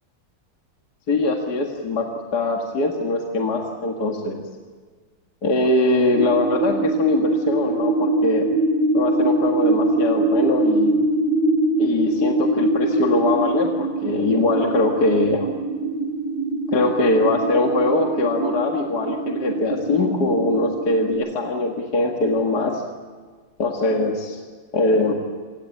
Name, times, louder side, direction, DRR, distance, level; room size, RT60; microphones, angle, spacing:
voice 1, 1.1-4.4 5.4-8.5 8.9-11.0 11.8-15.5 16.7-22.8 23.6-24.4 24.7-25.2, left 2 dB, 50° left, 1 dB, 2.4 m, -22 dB
sound 1, 6.1-21.1, right 2 dB, 50° right, 8.1 m, -23 dB
26.5 x 18.0 x 8.7 m, 1.5 s
omnidirectional pair, 2.3 m